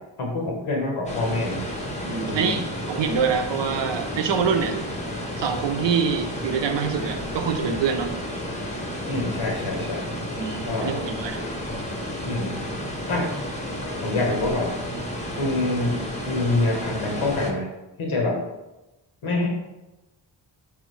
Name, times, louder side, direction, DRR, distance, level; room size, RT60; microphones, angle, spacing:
voice 1, 0.2-1.6 2.2-2.6 9.1-10.1 10.6-10.9 11.7-11.8 12.2-12.6 13.1-13.3 14.0-14.7 15.4-17.7 18.0-18.4 19.2-19.5, left 2 dB, 80° left, -1 dB, 1.1 m, -26 dB
sound 1, 1.1-17.5, equal, 15° left, 0.7 m, -32 dB
voice 2, 2.0-4.8 5.4-8.1 10.4-11.4, right 6 dB, 65° right, 6 dB, 0.7 m, -25 dB
3.7 x 3.4 x 3.2 m, 1.0 s
cardioid pair, 55°, 48 cm